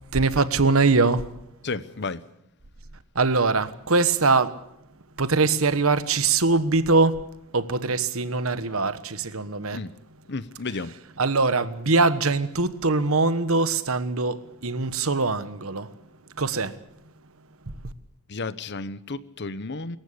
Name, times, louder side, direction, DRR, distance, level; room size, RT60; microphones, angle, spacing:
voice 1, 0.1-1.2 3.1-4.6 5.2-7.2 7.5-9.8 11.2-15.9 16.4-16.8 17.8-17.9, right 3 dB, 70° right, 1.3 m, -22 dB
voice 2, 1.6-2.2 9.7-9.9 10.3-10.9 18.3-20.0, left 3 dB, 55° left, 1.0 m, -32 dB
25.0 x 14.5 x 8.5 m
head